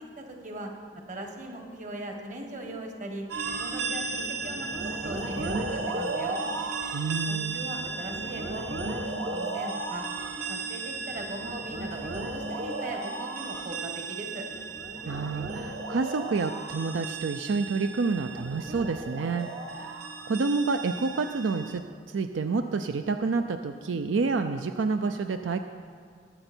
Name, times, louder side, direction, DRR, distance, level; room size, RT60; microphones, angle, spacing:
voice 1, 0.2-0.7 1.1-3.2 3.5-6.4 7.3-10.0 10.5-14.5, right 1 dB, 40° right, 2 dB, 1.6 m, -39 dB
sound 1, 3.3-21.8, right 3 dB, 60° right, 1.2 m, -34 dB
voice 2, 6.9-7.6 15.1-25.6, right 4 dB, 80° right, 8 dB, 0.5 m, -29 dB
21.0 x 7.8 x 4.4 m, 2.1 s
head